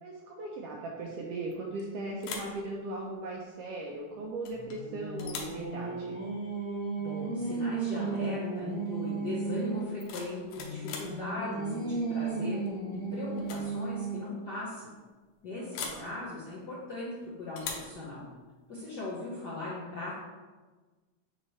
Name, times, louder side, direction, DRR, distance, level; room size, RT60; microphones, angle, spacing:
voice 1, 0.0-6.2 15.6-16.1, right 2 dB, 80° right, -1 dB, 1.4 m, -38 dB
sound 1, 1.5-1.9 2.2-2.6 4.4-4.8 5.2-5.6 7.5-7.6 8.0-8.3 9.8-11.2 12.7-13.0 13.3-13.7 13.9-14.0 15.7-16.1 17.6-18.0, left 5 dB, 85° left, 2.2 m, -41 dB
Singing, 4.5-9.9 10.6-14.4, right 4 dB, 5° left, 1.1 m, -34 dB
voice 2, 7.0-12.6 13.1-14.9 15.4-18.2 18.7-20.2, left 2 dB, 65° left, -7 dB, 1.0 m, -38 dB
6.8 x 4.7 x 3.1 m, 1.3 s
omnidirectional pair, 3.3 m